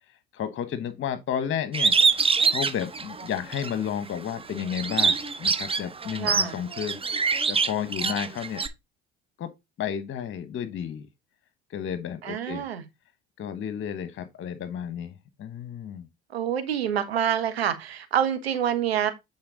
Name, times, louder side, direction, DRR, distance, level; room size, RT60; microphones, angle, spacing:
voice 1, 0.3-7.0 7.5-8.6 9.4-9.5 9.8-11.1 11.7-12.7 13.4-16.1, left 8 dB, 40° left, 1.2 m, -32 dB
Bird, 1.7-3.7 4.2-8.7, right 5 dB, 20° right, 1.0 m, -24 dB
voice 2, 6.2-6.5 12.2-12.8 16.3-19.1, right 9 dB, 85° right, 1.5 m, -26 dB
9.3 x 4.4 x 3.9 m
hypercardioid pair, 70°, 30 cm